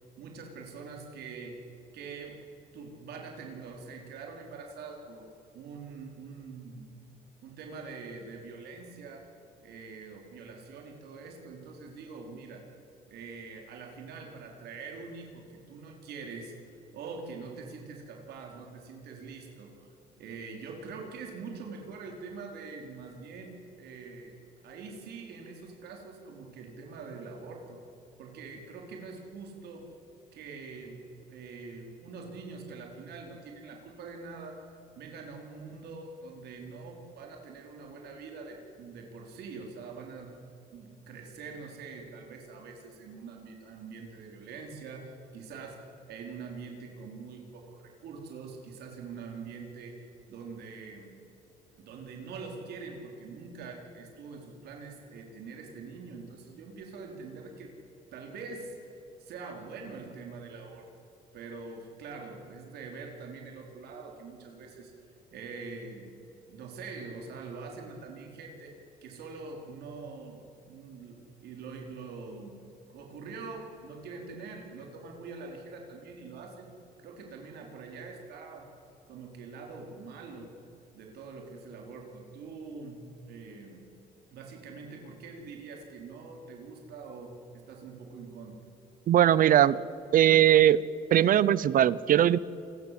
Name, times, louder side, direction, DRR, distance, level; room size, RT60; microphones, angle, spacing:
voice 1, 0.2-1.6 1.9-2.4 2.7-5.3 5.5-7.0 7.4-9.2 9.6-12.6 13.1-16.5 16.9-19.9 20.2-24.4 24.6-27.8 28.2-29.9 30.3-31.0 31.3-34.6 35.0-40.4 40.7-50.0 50.3-51.1 51.8-57.7 58.1-60.9 61.3-64.9 65.3-66.1 66.5-72.6 72.9-76.7 77.0-78.7 79.1-80.5 80.9-83.9 84.3-88.6, right 4 dB, 75° right, 1 dB, 4.5 m, -44 dB
voice 2, 89.1-89.8 90.1-90.8 91.1-92.4, right 11 dB, 55° right, 19 dB, 0.8 m, -20 dB
28.5 x 21.5 x 7.8 m, 2.8 s
cardioid pair, 110°, 17 cm